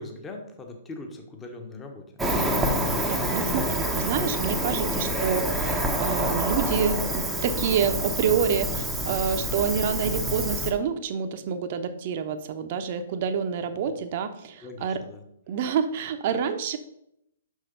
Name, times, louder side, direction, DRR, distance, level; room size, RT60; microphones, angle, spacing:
voice 1, 0.0-2.1 9.3-9.6 13.9-14.0 14.6-15.2, left 2 dB, 15° left, 3 dB, 1.3 m, -41 dB
Cricket, 2.2-10.7, right 1 dB, 5° right, 1.0 m, -27 dB
voice 2, 3.1-15.0 15.5-16.8, right 7 dB, 45° right, 8 dB, 0.9 m, -27 dB
6.5 x 5.8 x 5.4 m, 0.78 s
figure-of-eight pair, 120°, 0 cm